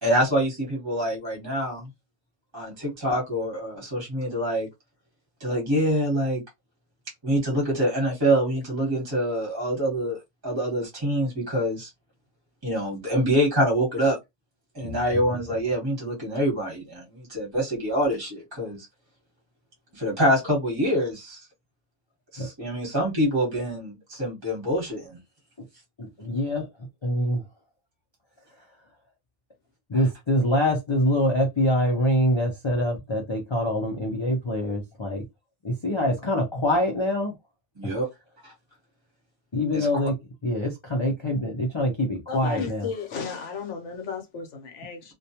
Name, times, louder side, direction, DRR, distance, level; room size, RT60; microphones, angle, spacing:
voice 1, 0.0-1.9 2.5-4.7 5.4-6.4 7.2-10.2 10.4-11.9 12.6-14.2 14.7-18.9 19.9-21.5 22.3-25.2 37.8-38.1 38.4-38.5 39.7-39.9, equal, 20° right, 1.0 m, -25 dB
voice 2, 14.8-15.2 22.4-22.5 26.0-27.5 28.6-28.7 29.9-35.3 35.6-37.3 37.8-38.0 39.5-40.2 40.4-42.9, left 1 dB, 45° left, 0.4 m, -25 dB
voice 3, 42.3-45.1, left 5 dB, 65° left, 0.9 m, -34 dB
2.3 x 2.2 x 2.8 m
omnidirectional pair, 1.4 m